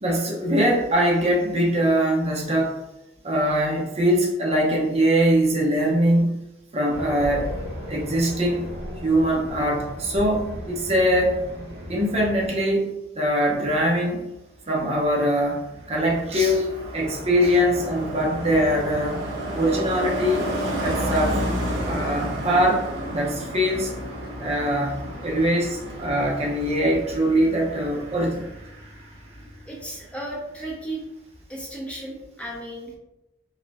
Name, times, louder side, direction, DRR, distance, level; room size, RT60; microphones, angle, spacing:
voice 1, 0.0-2.8 3.2-6.4 6.7-7.5 7.9-8.6 9.0-11.3 11.9-14.2 14.7-19.2 19.5-20.5 20.8-21.4 21.8-23.9 24.4-28.5, equal, 35° right, -2 dB, 0.8 m, -22 dB
Race car auto racing, 6.9-12.5, equal, 60° right, 1.2 m, -35 dB
Car passing by, 15.0-29.8 30.0-30.3, equal, 80° right, 1.3 m, -32 dB
voice 2, 29.7-31.0 31.5-33.0, right 1 dB, 5° left, -3 dB, 0.8 m, -34 dB
4.0 x 3.7 x 2.6 m, 0.91 s
head